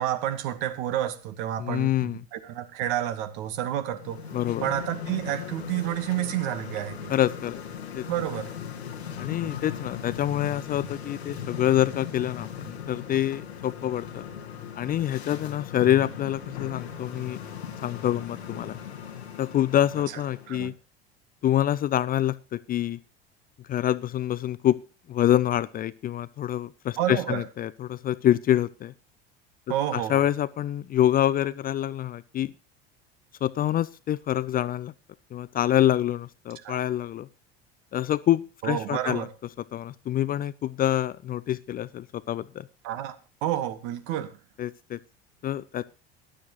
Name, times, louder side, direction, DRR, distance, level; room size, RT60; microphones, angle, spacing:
voice 1, 0.0-4.2 4.6-7.1 8.1-8.5 20.5-20.7 27.0-27.4 29.7-30.2 36.6-36.8 38.6-39.3 42.8-43.1 43.4-44.3, right 12 dB, 60° right, 10 dB, 1.5 m, -29 dB
voice 2, 1.6-2.2 4.3-4.6 7.1-7.6 7.9-8.0 9.2-14.2 14.8-17.4 17.8-18.8 19.4-20.7 21.4-23.0 23.7-24.8 25.1-28.9 29.9-32.5 33.4-34.9 35.3-37.3 37.9-39.3 39.7-42.7 44.6-45.0 45.4-45.8, left 12 dB, 30° left, 17 dB, 0.5 m, -26 dB
sound 1, 3.9-20.6, left 8 dB, 80° left, 1.7 m, -38 dB
15.0 x 11.0 x 3.0 m, 0.33 s
figure-of-eight pair, 70°, 31 cm